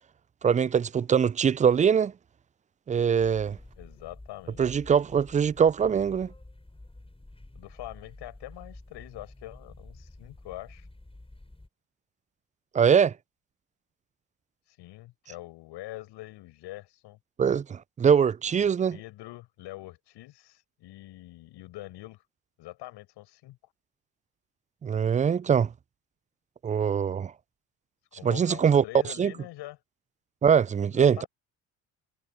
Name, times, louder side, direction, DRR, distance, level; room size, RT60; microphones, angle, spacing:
voice 1, 0.4-2.1 2.9-3.6 4.6-6.3 12.7-13.1 17.4-19.0 24.8-25.7 26.6-27.3 28.2-28.8 29.2-29.3 30.4-31.2, right 7 dB, 20° right, 0.4 m, -22 dB
sound 1, 3.2-11.7, left 2 dB, 15° left, 7.9 m, -49 dB
voice 2, 3.8-4.8 7.5-10.9 14.7-17.2 18.4-22.2 22.6-23.7 28.1-29.8 30.9-31.3, left 17 dB, 70° left, 6.8 m, -44 dB
hypercardioid pair, 50°, 43 cm